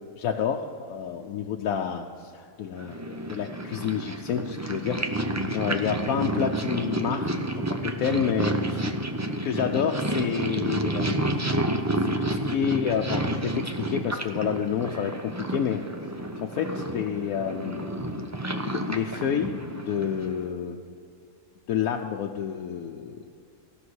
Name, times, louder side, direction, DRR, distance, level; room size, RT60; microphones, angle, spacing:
voice 1, 0.2-5.0 5.5-7.3 7.7-8.8 9.4-11.4 12.0-15.8 16.4-17.9 18.7-20.8 21.7-23.3, left 8 dB, 85° left, 2 dB, 1.1 m, -29 dB
Purr, 2.8-20.5, right 1 dB, 20° right, 0.5 m, -30 dB
15.5 x 6.2 x 8.0 m, 2.5 s
omnidirectional pair, 1.5 m